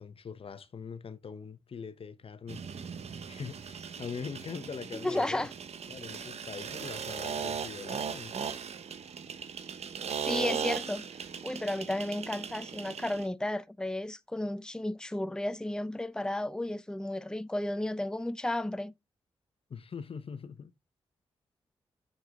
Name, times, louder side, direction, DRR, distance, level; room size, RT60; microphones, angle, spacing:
voice 1, 0.0-2.6 3.3-5.5 5.9-8.3 19.7-20.7, left 6 dB, 55° left, 0.9 m, -42 dB
sound 1, 2.5-13.3, right 7 dB, 75° right, 1.2 m, -38 dB
voice 2, 5.0-5.5 10.1-11.1 11.4-18.9, left 1 dB, 5° left, 0.7 m, -33 dB
6.8 x 6.4 x 3.8 m
cardioid pair, 55°, 11 cm